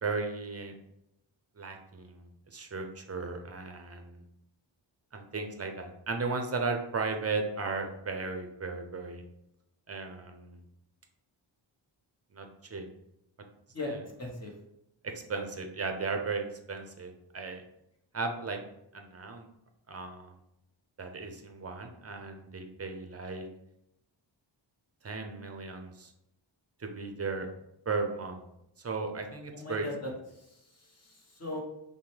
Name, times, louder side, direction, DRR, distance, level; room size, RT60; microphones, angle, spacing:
voice 1, 0.0-0.7 1.6-4.2 5.1-9.2 9.9-10.6 12.3-12.9 13.8-14.0 15.0-17.6 18.1-18.6 18.9-19.5 19.9-20.3 21.0-23.5 25.0-26.1 26.8-27.5 27.9-28.4 28.8-29.8, right 4 dB, 30° right, 5 dB, 0.6 m, -36 dB
voice 2, 13.7-14.5 29.5-31.6, left 2 dB, 30° left, 0 dB, 1.1 m, -39 dB
5.8 x 2.2 x 3.3 m, 0.83 s
wide cardioid pair, 90°, 48 cm